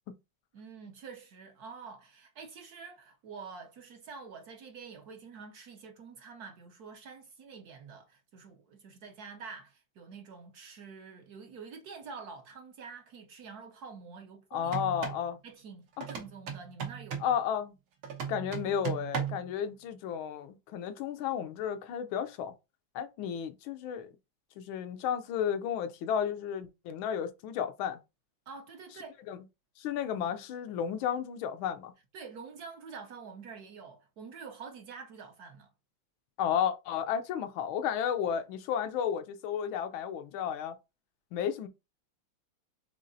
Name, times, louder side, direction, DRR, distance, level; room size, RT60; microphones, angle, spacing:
voice 1, 0.5-14.8 15.4-17.3 28.5-29.2 32.1-35.7, right 5 dB, 65° right, 1.0 m, -47 dB
voice 2, 14.5-15.4 16.0-16.1 17.2-17.7 18.3-22.5 22.9-24.1 24.6-28.0 29.3-29.4 29.8-31.9 36.4-40.8 41.3-41.7, left 8 dB, 90° left, 1.5 m, -33 dB
sound 1, 14.6-15.3 16.0-17.4 18.0-19.5, right 7 dB, 85° right, 1.9 m, -36 dB
5.4 x 3.8 x 2.6 m
omnidirectional pair, 2.2 m